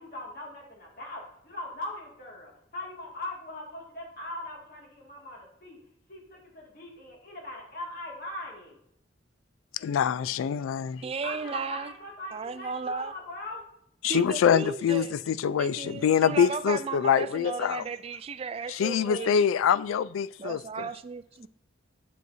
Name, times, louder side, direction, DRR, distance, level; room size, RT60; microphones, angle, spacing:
voice 1, 0.0-5.8 6.1-8.8 11.2-13.6, left 1 dB, 50° left, 2.2 m, -40 dB
voice 2, 9.7-11.0 14.0-17.8 18.7-20.9, left 8 dB, 85° left, 0.3 m, -25 dB
voice 3, 11.0-11.9 12.3-13.1 14.0-15.1 15.6-19.4 20.4-21.5, right 5 dB, 30° right, 0.3 m, -35 dB
9.2 x 6.9 x 2.7 m
head